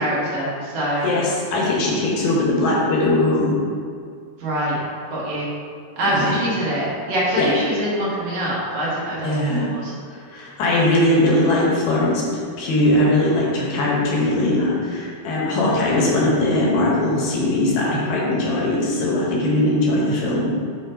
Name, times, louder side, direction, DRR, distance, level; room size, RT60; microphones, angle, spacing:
voice 1, 0.0-1.1 4.4-4.8 5.1-5.5 6.0-9.9, right 1 dB, 60° right, -8 dB, 2.7 m, -24 dB
voice 2, 1.0-3.6 6.1-6.4 7.4-7.5 9.2-9.7 10.3-12.2 12.6-20.6, left 1 dB, 70° left, -4 dB, 2.5 m, -20 dB
8.0 x 3.1 x 4.4 m, 2.2 s
omnidirectional pair, 4.4 m